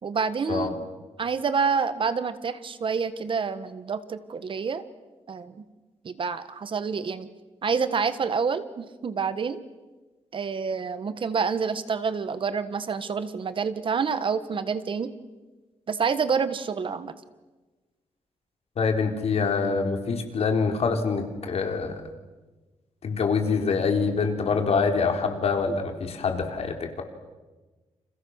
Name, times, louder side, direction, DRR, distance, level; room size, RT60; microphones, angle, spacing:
voice 1, 0.0-0.9 1.2-4.8 5.3-5.6 6.0-7.3 7.6-9.6 10.3-15.1 15.9-17.1, right 5 dB, 45° right, 13 dB, 1.5 m, -28 dB
voice 2, 18.8-22.0 23.0-27.0, left 5 dB, 60° left, 4 dB, 3.8 m, -25 dB
29.5 x 28.0 x 6.5 m, 1.2 s
wide cardioid pair, 155°, 12 cm